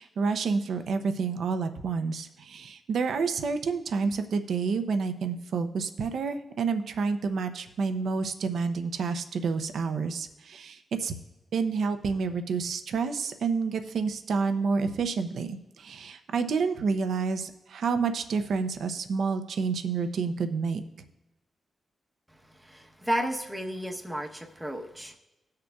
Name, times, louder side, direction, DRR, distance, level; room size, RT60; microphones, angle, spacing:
voice 1, 0.0-11.1 11.5-20.8, right 5 dB, 75° right, 8 dB, 0.6 m, -29 dB
voice 2, 22.6-25.2, equal, 5° right, 3 dB, 0.9 m, -32 dB
18.5 x 6.6 x 2.3 m, 1.0 s
cardioid pair, 110°, 0 cm